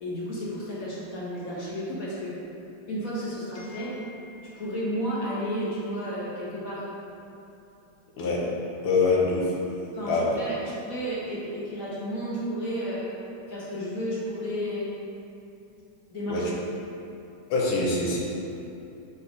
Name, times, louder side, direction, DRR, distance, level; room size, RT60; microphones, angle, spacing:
voice 1, 0.0-2.3 2.9-6.9 9.9-10.6 10.8-13.1 13.5-14.9 16.1-16.5, equal, 45° left, -7 dB, 1.4 m, -32 dB
voice 2, 8.8-9.6 10.1-10.3 10.6-10.8 16.3-16.4 17.5-18.2, left 3 dB, 85° left, -4 dB, 1.7 m, -24 dB
4.6 x 4.1 x 4.9 m, 2.8 s
omnidirectional pair, 2.4 m